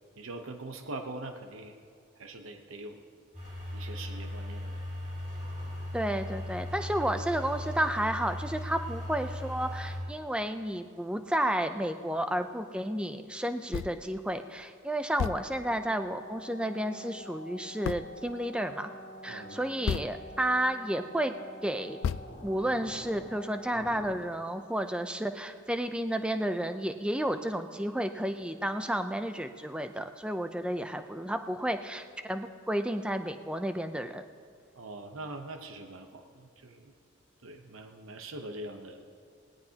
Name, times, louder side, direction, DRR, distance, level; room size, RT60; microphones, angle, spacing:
voice 1, 0.2-1.8 2.2-3.0 3.7-4.8 19.3-19.6 34.7-36.9 37.4-39.1, right 2 dB, 85° right, 5 dB, 0.9 m, -43 dB
sound 1, 3.3-10.0, left 1 dB, 40° right, 4.0 m, -38 dB
voice 2, 5.9-18.9 19.2-21.3 21.6-22.0 22.4-34.2, right 1 dB, 5° right, 8 dB, 0.5 m, -32 dB
sound 2, 13.7-14.1 14.6-14.7 15.2-15.9 17.8-18.3 19.8-20.5 21.0-21.1 22.0-22.8, left 7 dB, 80° left, 0.3 m, -34 dB
sound 3, 15.1-24.2, equal, 55° left, 2.4 m, -47 dB
18.0 x 17.5 x 2.9 m, 2.1 s
head